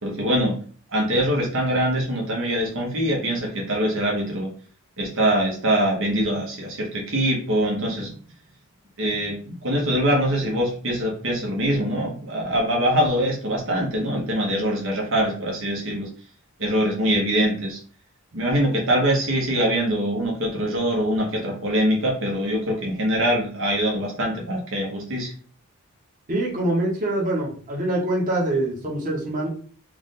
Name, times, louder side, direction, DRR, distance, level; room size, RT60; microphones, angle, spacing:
voice 1, 0.0-0.5 0.9-4.5 5.0-8.1 9.0-16.1 16.6-17.8 18.3-25.3, equal, 60° right, -2 dB, 1.3 m, -23 dB
voice 2, 26.3-29.5, right 1 dB, 40° right, -3 dB, 1.5 m, -24 dB
4.8 x 2.5 x 3.9 m, 0.43 s
head